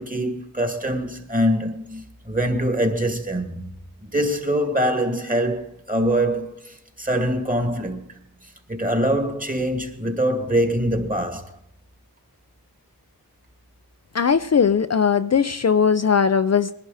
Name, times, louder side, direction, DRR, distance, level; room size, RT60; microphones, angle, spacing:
voice 1, 0.0-3.8 4.0-8.2 8.7-11.6, equal, 20° right, 2.2 m, -24 dB
voice 2, 14.1-16.7, left 6 dB, 45° left, 0.6 m, -19 dB
20.0 x 11.5 x 4.2 m
cardioid pair, 45°, 38 cm